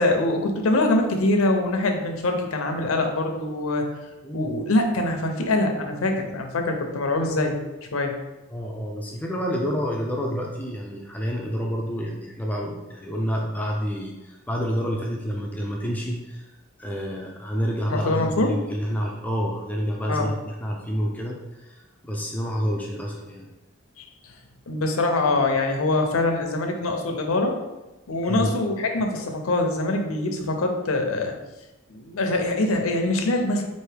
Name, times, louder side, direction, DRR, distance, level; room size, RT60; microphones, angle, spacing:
voice 1, 0.0-3.9 4.3-7.6 7.9-8.2 17.9-18.5 20.1-20.3 24.0-24.3 24.7-27.5 28.1-31.3 31.9-33.6, left 2 dB, 80° left, 4 dB, 0.6 m, -24 dB
voice 2, 4.2-4.6 8.5-16.4 16.8-23.5 28.2-28.5, equal, 5° left, -1 dB, 0.3 m, -29 dB
4.5 x 2.6 x 3.3 m, 1.1 s
head